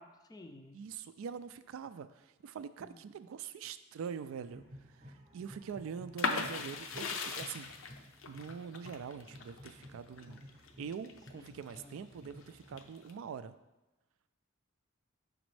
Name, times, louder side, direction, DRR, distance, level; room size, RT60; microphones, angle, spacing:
voice 1, 0.0-0.8 2.8-3.1 11.3-12.1, left 2 dB, 20° left, 6 dB, 0.4 m, -55 dB
voice 2, 0.7-4.6 4.9-7.7 8.3-10.4 10.8-13.5, right 7 dB, 80° right, 12 dB, 0.3 m, -44 dB
sound 1, 4.5-13.2, equal, 35° right, 0.7 m, -55 dB
sound 2, 6.2-11.8 12.3-13.1, left 4 dB, 70° left, 0.5 m, -38 dB
6.1 x 5.0 x 3.2 m, 1.1 s
head